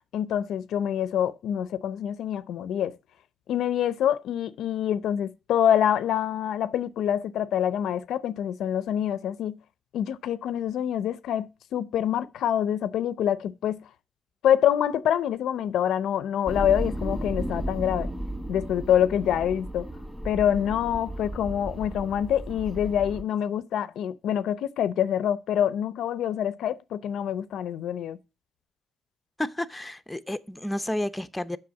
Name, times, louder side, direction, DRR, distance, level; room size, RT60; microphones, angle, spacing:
voice 1, 0.0-3.0 3.5-9.6 9.9-13.9 14.4-18.1 18.5-19.9 20.2-28.2, left 10 dB, 75° left, 0.5 m, -26 dB
sound 1, 16.5-23.2, right 1 dB, 10° right, 2.1 m, -34 dB
voice 2, 29.4-31.6, left 1 dB, 10° left, 0.7 m, -31 dB
7.7 x 6.1 x 7.1 m
cardioid pair, 90°, 0 cm